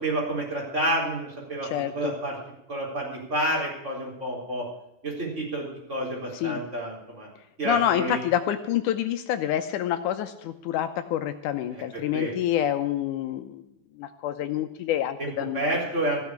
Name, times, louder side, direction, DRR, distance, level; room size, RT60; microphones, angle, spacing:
voice 1, 0.0-1.7 1.9-2.4 2.7-4.7 5.0-7.3 7.6-8.2 12.1-12.3 15.2-16.2, right 1 dB, 20° right, -2 dB, 4.2 m, -29 dB
voice 2, 1.6-2.2 6.3-6.6 7.7-13.7 14.0-15.8, left 11 dB, 85° left, 9 dB, 2.2 m, -27 dB
15.0 x 7.1 x 10.0 m, 0.81 s
omnidirectional pair, 3.6 m